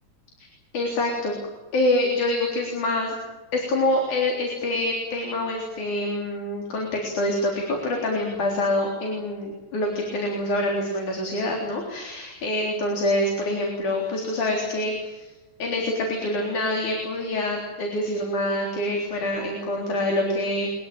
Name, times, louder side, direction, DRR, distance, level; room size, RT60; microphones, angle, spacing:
voice 1, 0.7-1.3 1.7-3.1 3.5-15.3 15.6-20.7, left 1 dB, 60° left, 0 dB, 5.1 m, -26 dB
24.0 x 22.0 x 9.0 m, 1.2 s
omnidirectional pair, 3.9 m